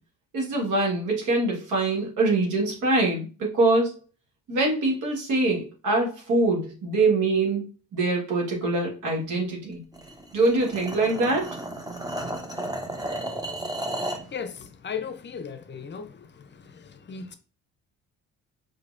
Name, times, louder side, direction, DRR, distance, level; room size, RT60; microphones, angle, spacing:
voice 1, 0.3-3.9 4.5-7.6 7.9-9.8 10.3-11.6, right 2 dB, 80° right, 1.7 m, -24 dB
sound 1, 9.9-14.3, right 1 dB, 15° right, 0.8 m, -33 dB
voice 2, 14.3-16.1 17.1-17.4, left 6 dB, 35° left, 0.6 m, -35 dB
5.0 x 3.1 x 2.5 m
cardioid pair, 90°, 30 cm